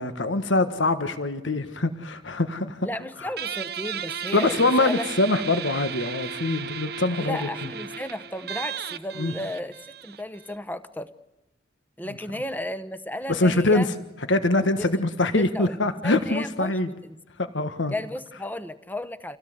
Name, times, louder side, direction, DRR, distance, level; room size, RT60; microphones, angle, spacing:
voice 1, 0.0-2.9 3.2-3.3 4.3-7.5 9.2-9.3 13.3-13.9 14.3-16.9 17.4-17.9, left 2 dB, 85° left, 9 dB, 1.5 m, -24 dB
voice 2, 2.8-5.1 7.2-11.1 12.0-13.9 14.8-15.0 15.3-15.8 16.0-17.2 17.9-19.4, left 1 dB, 10° left, 10 dB, 1.0 m, -34 dB
Guitar, 3.4-10.6, right 7 dB, 55° right, 0.8 m, -35 dB
27.5 x 17.0 x 8.0 m, 1.0 s
head